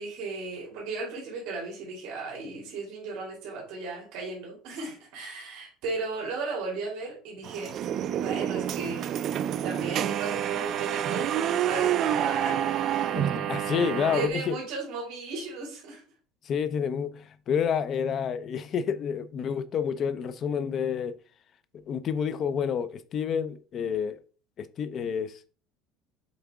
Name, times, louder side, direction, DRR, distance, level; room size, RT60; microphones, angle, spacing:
voice 1, 0.0-7.7 8.2-9.1 9.6-12.5 13.2-13.5 14.1-16.0, right 3 dB, 65° right, 2.8 m, -35 dB
sound 1, 7.4-14.3, right 10 dB, 40° right, 0.3 m, -28 dB
voice 2, 13.1-14.6 16.4-21.2 21.9-24.2 24.6-25.5, left 7 dB, 35° left, 0.5 m, -29 dB
7.2 x 3.9 x 3.6 m
cardioid pair, 165°, 0 cm